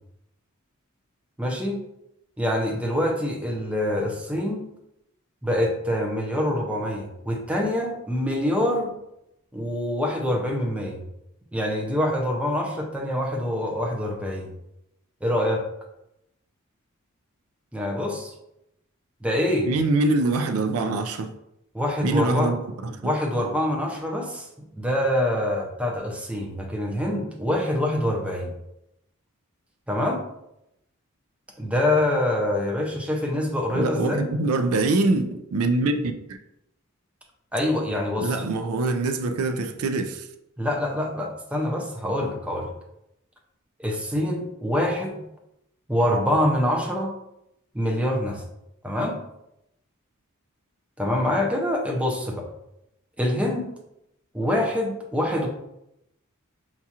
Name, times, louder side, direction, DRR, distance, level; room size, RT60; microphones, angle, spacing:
voice 1, 1.4-1.8 2.4-4.6 5.4-9.0 9.5-11.0 11.5-14.5 15.2-15.6 17.7-18.3 19.2-19.7 21.7-22.5 23.0-24.5 24.8-28.5 29.9-30.2 31.6-34.3 37.5-38.3 40.6-42.7 43.8-45.2 45.9-47.1 47.7-48.4 48.8-49.2 51.0-52.5 53.2-53.7 54.3-55.5, left 1 dB, 5° right, 0.6 m, -25 dB
voice 2, 19.7-21.3 22.0-22.6 22.8-23.1 33.8-36.4 38.2-40.3, right 2 dB, 75° right, 0.4 m, -24 dB
5.8 x 2.4 x 2.8 m
head